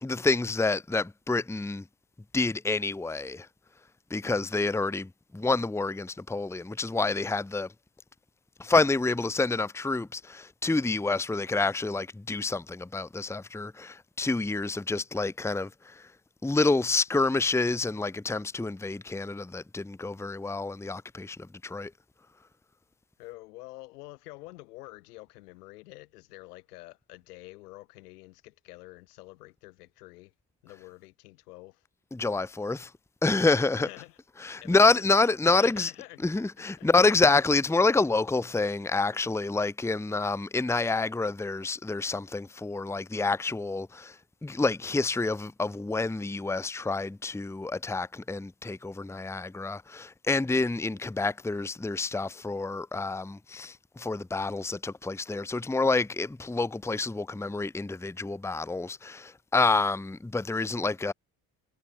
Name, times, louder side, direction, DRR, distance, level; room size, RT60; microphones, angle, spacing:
voice 1, 0.0-1.8 2.3-3.5 4.1-7.7 8.6-16.1 16.4-21.4 21.6-21.9 32.1-32.9 33.2-33.9 34.4-35.9 36.2-61.1, left 3 dB, 5° left, 0.8 m, -28 dB
voice 2, 23.2-30.3 30.6-31.8 33.7-34.2 34.6-35.1 35.4-36.2 36.8-36.9, left 20 dB, 90° left, 3.3 m, -47 dB
hypercardioid pair, 55°, 45 cm